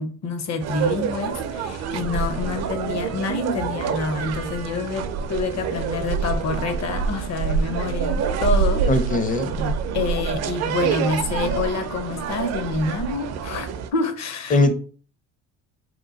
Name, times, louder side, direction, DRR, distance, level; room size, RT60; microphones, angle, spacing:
voice 1, 0.0-8.9 9.9-14.7, left 3 dB, 50° left, 7 dB, 0.8 m, -27 dB
sound 1, 0.6-13.9, right 6 dB, 45° right, 0.5 m, -26 dB
voice 2, 8.9-9.7 14.5-14.7, left 2 dB, 25° left, 8 dB, 0.5 m, -20 dB
2.9 x 2.2 x 3.9 m, 0.41 s
supercardioid pair, 100°, 36 cm